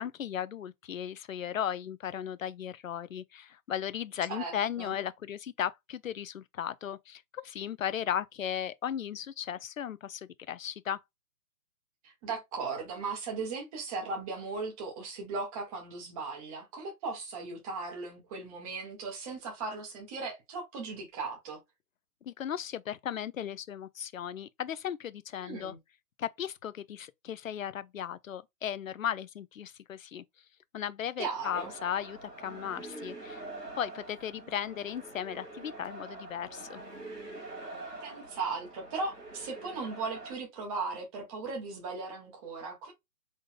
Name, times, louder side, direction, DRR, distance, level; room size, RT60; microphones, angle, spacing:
voice 1, 0.0-11.0 22.2-25.7 26.2-30.2 30.7-33.5 33.7-36.8, left 9 dB, 60° left, 0.5 m, -36 dB
voice 2, 4.3-4.9 12.0-21.6 25.4-25.8 31.2-31.7 38.0-42.9, right 4 dB, 20° right, 1.5 m, -37 dB
sound 1, 31.5-40.4, right 2 dB, 80° right, 2.1 m, -45 dB
4.1 x 3.7 x 2.2 m
figure-of-eight pair, 135°, 48 cm